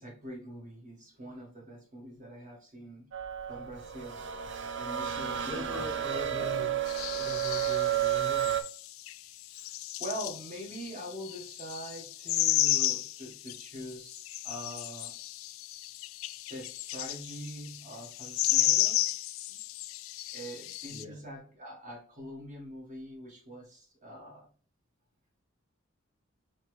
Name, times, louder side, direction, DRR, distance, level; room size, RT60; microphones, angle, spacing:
voice 1, 0.0-3.1 3.5-4.3 4.8-5.9 10.0-15.1 16.5-19.1 19.5-19.6 20.3-24.5, equal, 40° right, 1.6 m, -43 dB
sound 1, 3.1-8.6, right 10 dB, 65° right, 0.5 m, -32 dB
voice 2, 5.4-6.8 7.1-8.6 9.5-9.8 20.9-21.2, left 1 dB, 20° right, 1.1 m, -41 dB
sound 2, 6.9-21.0, left 15 dB, 85° left, 0.3 m, -33 dB
4.2 x 3.1 x 3.3 m
head